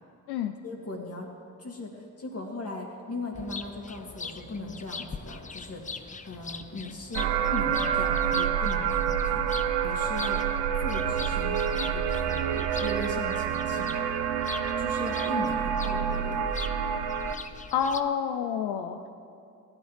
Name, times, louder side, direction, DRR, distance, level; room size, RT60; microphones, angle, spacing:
voice 1, 0.6-1.3 1.6-13.9 14.8-16.4, left 2 dB, 40° left, 0 dB, 2.3 m, -38 dB
sound 1, 3.3-18.0, left 4 dB, 20° left, 0.5 m, -42 dB
sound 2, 7.1-17.3, right 8 dB, 85° right, 0.6 m, -27 dB
voice 2, 17.7-19.1, left 7 dB, 90° left, 5 dB, 0.5 m, -28 dB
16.0 x 10.0 x 3.3 m, 2.5 s
supercardioid pair, 45°, 38 cm